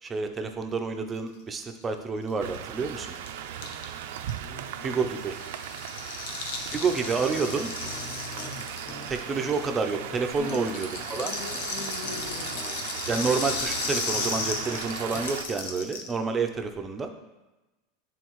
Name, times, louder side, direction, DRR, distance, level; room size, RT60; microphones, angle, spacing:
voice 1, 0.0-3.2 4.8-5.4 6.7-7.7 9.1-11.3 13.1-17.1, right 5 dB, 20° right, 5 dB, 0.6 m, -29 dB
Rattle (instrument), 2.3-2.4 2.5-2.6 2.8-10.0 10.3-16.1, left 4 dB, 80° left, 0.9 m, -35 dB
sound 1, 2.4-15.4, right 10 dB, 80° right, 0.4 m, -38 dB
voice 2, 4.4-5.1 8.4-8.7 10.4-10.8 11.1-12.5, left 3 dB, 60° left, -2 dB, 1.9 m, -40 dB
sound 2, 6.8-15.2, left 3 dB, 30° left, 1.0 m, -45 dB
10.0 x 3.8 x 3.1 m, 1.1 s
supercardioid pair, 145°, 0 cm